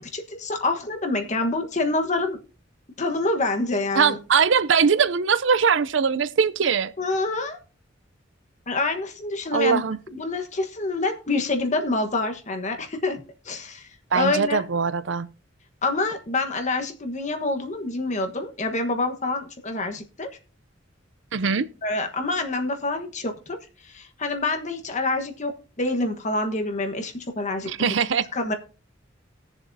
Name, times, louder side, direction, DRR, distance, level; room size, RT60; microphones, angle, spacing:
voice 1, 0.0-2.4 3.0-4.2 7.0-7.6 8.7-9.8 10.1-13.9 14.1-14.6 15.8-20.3 21.8-23.6 23.8-27.9 28.3-28.5, left 2 dB, 40° left, 1.3 m, -27 dB
voice 2, 3.9-6.9 9.5-10.0 14.1-15.3 21.3-21.7 27.7-28.3, right 6 dB, 70° right, 0.6 m, -21 dB
19.5 x 7.0 x 2.7 m
head